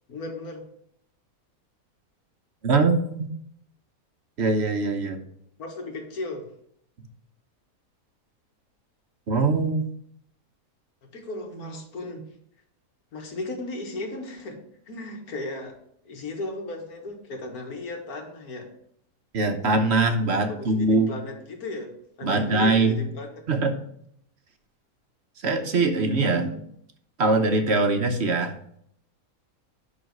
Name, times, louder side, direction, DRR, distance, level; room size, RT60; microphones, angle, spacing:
voice 1, 0.1-0.7 5.6-6.5 11.1-12.2 13.1-14.6 14.9-15.8 16.0-18.7 20.3-23.4, left 2 dB, 90° left, 3 dB, 2.0 m, -36 dB
voice 2, 2.6-3.3 4.4-5.2 9.3-9.8 19.3-21.1 22.2-23.0 23.5-23.9 25.4-26.6 27.2-28.5, right 3 dB, 55° right, 7 dB, 1.0 m, -22 dB
11.0 x 3.9 x 5.3 m, 0.69 s
omnidirectional pair, 1.5 m